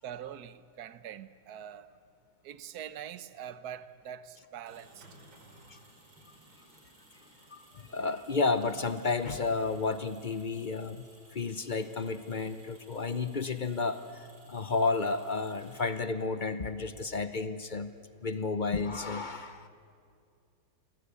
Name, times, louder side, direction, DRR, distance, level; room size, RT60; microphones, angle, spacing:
voice 1, 0.0-1.9 2.4-5.2 19.3-19.4, right 9 dB, 60° right, 1.3 m, -44 dB
sound 1, 4.4-16.3, right 1 dB, 75° right, 5.5 m, -59 dB
voice 2, 7.5-11.0 11.3-17.9 18.2-19.7, left 4 dB, 50° left, 0.5 m, -32 dB
29.5 x 23.5 x 8.4 m
omnidirectional pair, 2.1 m